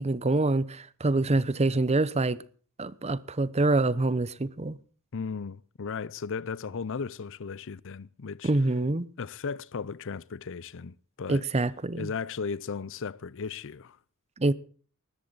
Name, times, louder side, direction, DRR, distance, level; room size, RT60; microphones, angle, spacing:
voice 1, 0.0-2.4 2.8-4.8 8.4-9.1 11.3-12.1 14.4-14.5, right 2 dB, 30° right, 0.8 m, -26 dB
voice 2, 5.1-8.5 9.2-11.4 12.0-14.0, left 5 dB, 65° left, 0.6 m, -36 dB
19.5 x 14.0 x 4.0 m
head